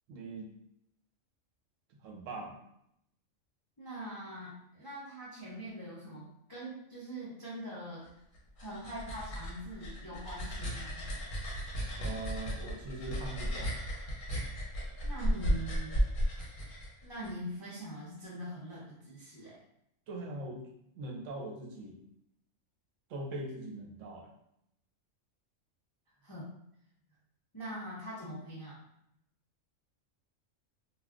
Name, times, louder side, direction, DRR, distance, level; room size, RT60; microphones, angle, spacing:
voice 1, 0.1-0.5 2.0-2.6 12.0-13.7 20.1-20.6 21.0-22.0 23.1-24.3, right 2 dB, 75° right, 0 dB, 1.0 m, -41 dB
voice 2, 3.8-8.1 8.6-11.1 15.0-16.0 17.0-19.6 26.2-26.5 27.5-28.8, right 1 dB, 30° left, -8 dB, 0.4 m, -43 dB
sound 1, 8.3-17.3, equal, 50° left, 0.8 m, -34 dB
2.3 x 2.2 x 3.5 m, 0.78 s
omnidirectional pair, 1.3 m